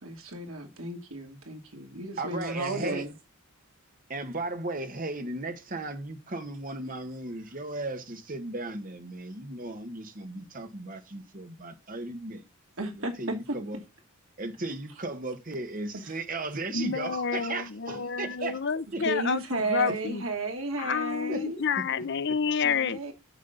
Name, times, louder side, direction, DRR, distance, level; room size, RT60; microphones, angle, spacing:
voice 1, 0.0-3.1 12.8-13.6 15.9-16.0 19.0-21.6 22.6-23.1, right 2 dB, 65° right, 2.6 m, -33 dB
voice 2, 2.2-3.0 4.1-12.5 13.0-13.8 14.4-18.6 18.9-19.0 19.9-20.0 21.3-21.4 21.8-21.9, right 2 dB, 40° right, 1.4 m, -36 dB
voice 3, 16.7-20.2 20.8-23.0, left 6 dB, 50° left, 0.6 m, -29 dB
9.4 x 7.6 x 3.9 m
head